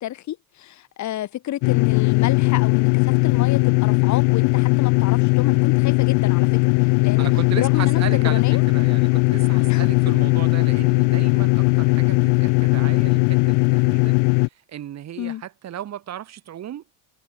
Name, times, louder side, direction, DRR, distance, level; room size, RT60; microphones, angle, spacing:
voice 1, 0.0-7.3 7.5-8.6 9.6-9.8 15.2-15.4, left 13 dB, 45° left, 2.8 m, -30 dB
sound 1, 1.6-14.5, left 38 dB, 75° left, 0.6 m, -18 dB
voice 2, 7.2-16.8, right 11 dB, 40° right, 6.1 m, -35 dB
cardioid pair, 140°, 40 cm